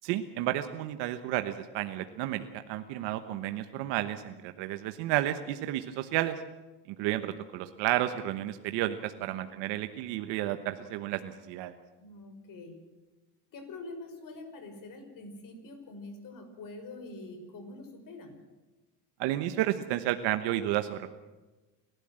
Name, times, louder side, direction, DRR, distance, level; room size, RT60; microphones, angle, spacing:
voice 1, 0.0-6.4 6.9-11.7 19.2-21.1, right 14 dB, 80° right, 9 dB, 1.2 m, -32 dB
voice 2, 9.1-9.4 12.0-12.8 13.5-18.4, left 2 dB, 50° left, 7 dB, 5.6 m, -45 dB
27.5 x 13.0 x 7.7 m, 1.2 s
cardioid pair, 120°, 42 cm